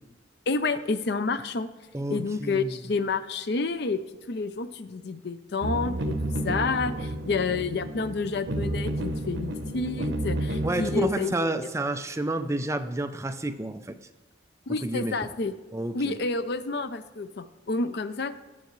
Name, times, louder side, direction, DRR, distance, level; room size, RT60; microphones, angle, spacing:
voice 1, 0.5-1.7 2.1-4.0 4.3-6.2 6.4-11.7 14.7-15.5 15.9-18.3, left 4 dB, 65° left, 12 dB, 0.5 m, -29 dB
voice 2, 1.9-2.7 10.6-14.0 14.8-15.2 15.7-16.2, right 2 dB, 15° right, 8 dB, 0.5 m, -30 dB
sound 1, 5.6-11.1, right 1 dB, 85° right, 0.9 m, -31 dB
17.0 x 6.9 x 3.1 m, 1.2 s
head